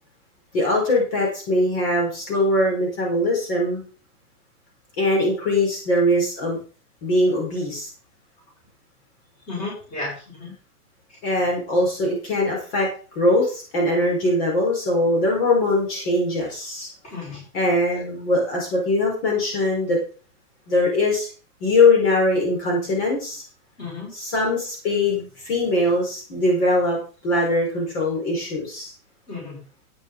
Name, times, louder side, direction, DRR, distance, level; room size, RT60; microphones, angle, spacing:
voice 1, 0.5-3.8 5.0-6.6 7.0-7.9 11.2-12.9 13.1-16.9 17.5-20.0 20.7-21.3 21.6-23.4 24.1-27.0 27.2-28.9, left 1 dB, 40° left, -1 dB, 4.8 m, -21 dB
voice 2, 9.5-10.5 17.0-17.4 17.9-18.0 23.8-24.1 29.3-29.6, left 3 dB, 15° left, -4 dB, 5.5 m, -33 dB
12.0 x 9.3 x 3.9 m, 0.38 s
hypercardioid pair, 175°, 46 cm